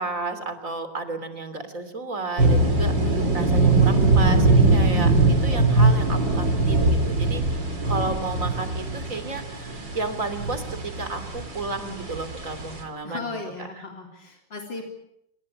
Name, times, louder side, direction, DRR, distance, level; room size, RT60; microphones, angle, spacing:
voice 1, 0.0-7.4 7.8-13.3, right 3 dB, 45° right, 10 dB, 3.6 m, -32 dB
sound 1, 2.4-12.8, right 2 dB, 75° right, 4.8 m, -21 dB
voice 2, 5.4-5.8 13.0-14.8, left 4 dB, 85° left, 2 dB, 4.3 m, -36 dB
28.5 x 21.0 x 8.6 m, 0.81 s
omnidirectional pair, 2.0 m